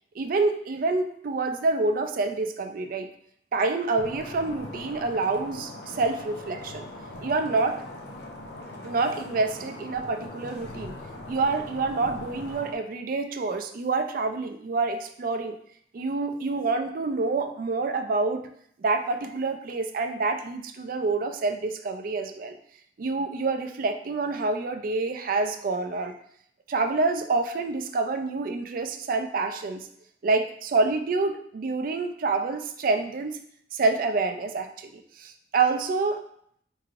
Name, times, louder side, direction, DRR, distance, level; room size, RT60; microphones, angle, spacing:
voice 1, 0.2-3.1 3.5-6.9 7.2-7.8 8.8-15.6 15.9-18.4 18.8-22.6 23.0-26.1 26.7-29.9 30.2-33.4 33.7-34.9 35.2-36.2, right 3 dB, 50° right, 7 dB, 0.4 m, -27 dB
sound 1, 4.0-12.8, left 1 dB, 70° left, 0.6 m, -41 dB
4.5 x 3.2 x 2.5 m, 0.66 s
head